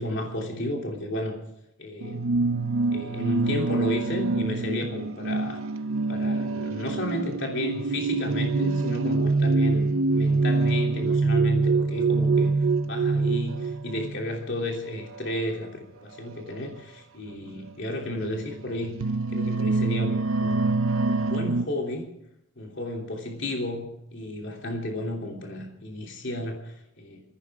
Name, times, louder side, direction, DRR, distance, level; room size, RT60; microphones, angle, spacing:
voice 1, 0.0-1.4 1.8-2.2 2.9-5.6 6.1-12.5 12.8-19.0 19.3-22.0 22.6-27.2, left 1 dB, 55° left, 1 dB, 3.2 m, -33 dB
sound 1, 2.0-14.3 15.1-15.4 16.5-16.6 17.3-17.4 18.1-21.7, right 3 dB, 75° right, 0.7 m, -25 dB
21.5 x 16.0 x 3.7 m, 0.79 s
head